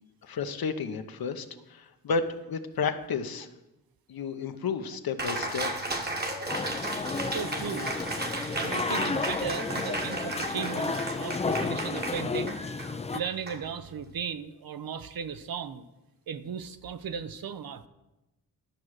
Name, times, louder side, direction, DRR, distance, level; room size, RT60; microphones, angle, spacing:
voice 1, 0.2-3.5 4.1-5.7, left 5 dB, 70° left, 8 dB, 0.9 m, -32 dB
Cheering, 5.2-14.1, right 2 dB, 25° right, 1.2 m, -35 dB
sound 1, 6.5-13.2, left 4 dB, 20° left, 0.4 m, -32 dB
voice 2, 7.1-7.9 8.3-12.6 13.1-15.8 16.3-17.9, right 7 dB, 70° right, 12 dB, 0.7 m, -36 dB
11.5 x 6.0 x 6.4 m, 1.0 s
wide cardioid pair, 130°, 37 cm